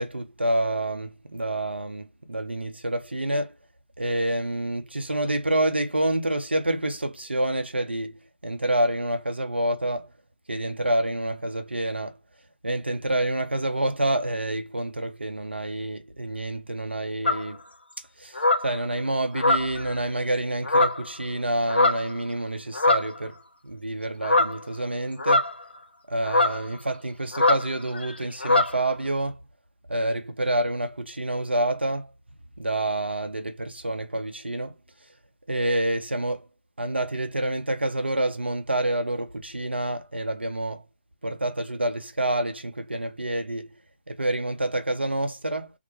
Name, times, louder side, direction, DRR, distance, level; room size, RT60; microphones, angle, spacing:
voice 1, 0.0-3.5 4.0-8.1 8.4-10.1 10.5-12.2 12.6-17.6 18.2-18.4 18.6-23.3 23.6-25.4 26.1-29.4 29.9-32.1 32.6-34.7 35.5-36.4 36.8-40.8 41.2-43.7 44.1-45.7, right 1 dB, 85° right, 0.6 m, -27 dB
sound 1, 17.3-17.5 18.4-18.7 19.3-19.9 20.6-21.1 21.7-22.1 22.7-23.2 24.2-24.6 25.2-25.8 26.3-26.6 27.3-27.7 27.9-28.1 28.4-28.8, left 2 dB, 75° left, 0.6 m, -22 dB
2.1 x 2.0 x 3.0 m
figure-of-eight pair, 145°, 6 cm